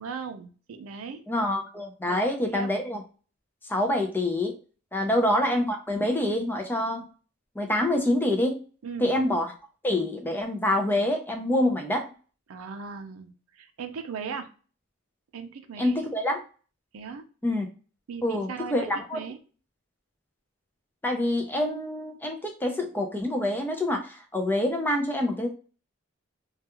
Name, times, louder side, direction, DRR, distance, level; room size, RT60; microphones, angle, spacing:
voice 1, 0.0-1.2 2.0-2.7 4.9-5.1 8.8-9.1 12.5-14.5 15.3-16.2 16.9-17.2 18.1-19.4, right 5 dB, 85° right, 6 dB, 0.4 m, -38 dB
voice 2, 1.3-3.0 3.7-4.5 4.9-7.0 7.6-8.6 9.0-9.5 9.8-12.1 15.8-16.4 17.4-17.7 18.2-19.2 21.0-25.5, left 1 dB, 10° left, 3 dB, 0.4 m, -26 dB
2.3 x 2.3 x 2.8 m, 0.37 s
head